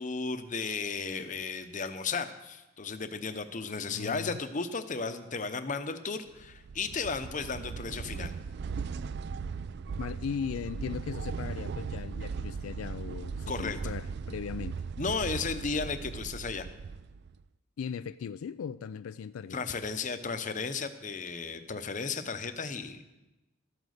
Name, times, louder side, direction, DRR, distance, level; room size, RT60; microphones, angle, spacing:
voice 1, 0.0-8.3 13.5-13.9 15.0-16.7 19.5-23.2, left 4 dB, 40° left, 0.8 m, -34 dB
voice 2, 3.9-4.4 10.0-14.8 17.8-19.6, left 7 dB, 80° left, 0.3 m, -38 dB
sound 1, 6.4-17.4, right 5 dB, 55° right, 0.4 m, -38 dB
13.5 x 9.2 x 6.5 m
head